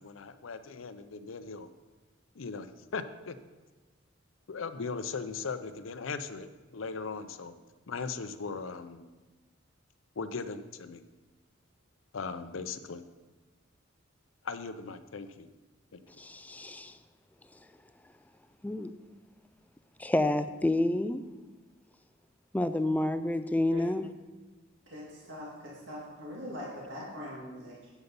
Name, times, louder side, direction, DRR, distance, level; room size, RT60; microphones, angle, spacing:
voice 1, 0.0-1.7 2.3-3.4 4.5-7.5 7.9-9.0 10.2-11.0 12.1-13.0 14.4-15.5 15.9-16.0, left 4 dB, 85° left, 11 dB, 0.6 m, -38 dB
voice 2, 16.2-17.0 18.6-18.9 20.0-21.2 22.5-24.0, left 1 dB, 10° left, 11 dB, 0.3 m, -29 dB
voice 3, 24.9-27.9, left 1 dB, 65° right, -5 dB, 2.1 m, -42 dB
8.2 x 8.0 x 5.3 m, 1.2 s
head